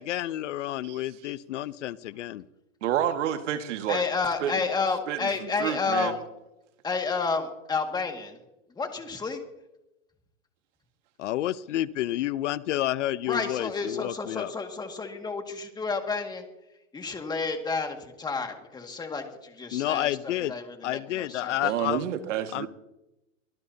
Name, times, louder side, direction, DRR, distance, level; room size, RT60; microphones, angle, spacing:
voice 1, 0.0-2.4 11.2-14.5 19.7-20.5 20.8-22.0 22.5-22.7, left 14 dB, 65° left, 17 dB, 0.8 m, -30 dB
voice 2, 2.8-4.0 4.4-4.5 5.1-5.3 5.6-6.2 21.6-22.7, right 10 dB, 65° right, 7 dB, 1.9 m, -29 dB
voice 3, 3.9-6.2 6.8-8.4 8.8-9.4 13.3-16.4 16.9-21.6, left 4 dB, 10° left, 4 dB, 2.0 m, -30 dB
24.5 x 18.0 x 2.8 m, 0.94 s
hypercardioid pair, 145°, 39 cm